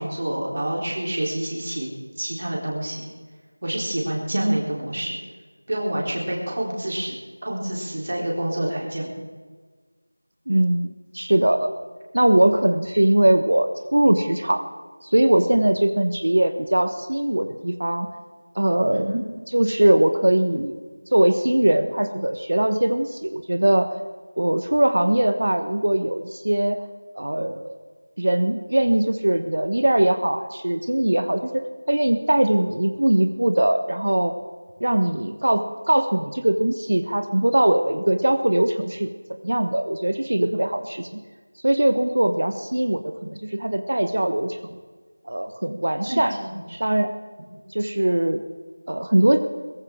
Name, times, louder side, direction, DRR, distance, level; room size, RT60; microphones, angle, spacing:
voice 1, 0.0-1.9 2.2-3.1 3.6-5.2 5.7-9.2 18.9-19.2 46.1-46.8, right 1 dB, 40° right, -2 dB, 3.5 m, -28 dB
voice 2, 10.5-10.9 11.1-11.7 12.1-14.6 15.0-18.1 18.5-19.1 19.5-20.7 21.1-23.9 24.4-26.8 27.2-27.7 28.2-34.3 34.8-39.1 39.4-41.1 41.6-44.7 45.3-46.3 46.8-47.1 47.7-48.4 48.9-49.4, right 1 dB, 60° right, 8 dB, 1.1 m, -21 dB
21.5 x 15.0 x 3.7 m, 1.5 s
figure-of-eight pair, 180°, 0 cm